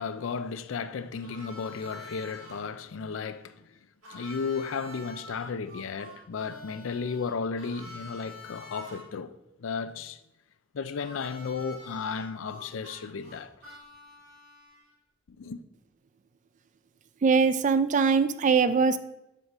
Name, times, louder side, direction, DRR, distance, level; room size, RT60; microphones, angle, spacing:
voice 1, 0.0-3.7 4.1-9.3 9.6-10.2 10.7-13.5 15.4-15.6, left 5 dB, 70° left, 0.4 m, -34 dB
Harmonica, 1.2-2.6 4.0-9.0 11.0-14.9, left 1 dB, 80° right, 2.4 m, -47 dB
voice 2, 17.2-19.0, right 5 dB, 40° right, 0.3 m, -22 dB
6.3 x 4.1 x 5.1 m
head